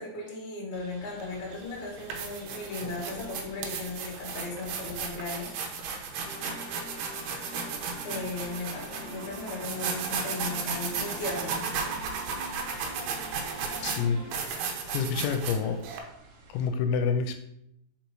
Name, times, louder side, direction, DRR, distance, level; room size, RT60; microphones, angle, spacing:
voice 1, 0.0-5.5 5.9-6.6 8.0-11.7 12.7-13.0, left 3 dB, 50° left, -3 dB, 0.7 m, -37 dB
sound 1, 0.7-16.7, right 3 dB, 65° right, 2.4 m, -53 dB
sound 2, 1.2-1.3 1.9-16.0, right 5 dB, 85° right, 2.9 m, -35 dB
sound 3, 6.1-14.5, right 1 dB, ahead, 1.4 m, -45 dB
voice 2, 13.8-14.2 14.6-15.9 16.5-17.4, left 6 dB, 80° left, 7 dB, 2.3 m, -28 dB
5.3 x 5.1 x 4.5 m, 0.80 s
omnidirectional pair, 4.5 m